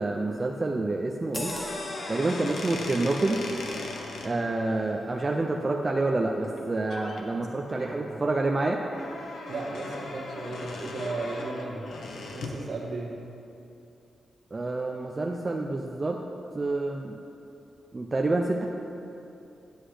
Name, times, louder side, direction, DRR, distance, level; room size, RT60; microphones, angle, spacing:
voice 1, 0.0-1.5 2.1-3.4 4.2-8.8 14.5-16.2 16.5-17.2 17.9-18.7, right 2 dB, 25° right, 1 dB, 0.4 m, -28 dB
sound 1, 1.3-6.3 6.7-6.9, left 1 dB, 20° left, 0.7 m, -42 dB
sound 2, 1.4-4.3 6.4-6.6 6.9-7.2 7.7-12.6, left 2 dB, 65° left, 0.8 m, -38 dB
voice 2, 7.9-8.2 9.5-11.8 12.3-13.2, right 2 dB, 60° right, -2 dB, 1.3 m, -35 dB
9.6 x 8.0 x 3.3 m, 2.8 s
wide cardioid pair, 160°, 0 cm